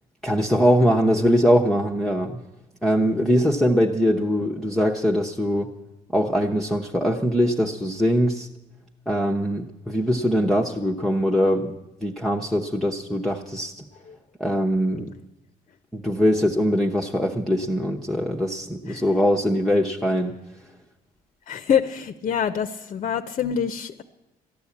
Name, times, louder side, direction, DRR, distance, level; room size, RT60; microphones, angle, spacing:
voice 1, 0.2-2.4 2.8-5.7 6.1-8.5 9.1-11.7 12.0-13.8 14.4-15.1 15.9-20.4, equal, ahead, -1 dB, 0.9 m, -22 dB
voice 2, 21.5-24.0, left 8 dB, 45° left, 10 dB, 0.7 m, -25 dB
14.0 x 10.5 x 8.4 m, 0.99 s
cardioid pair, 110°, 17 cm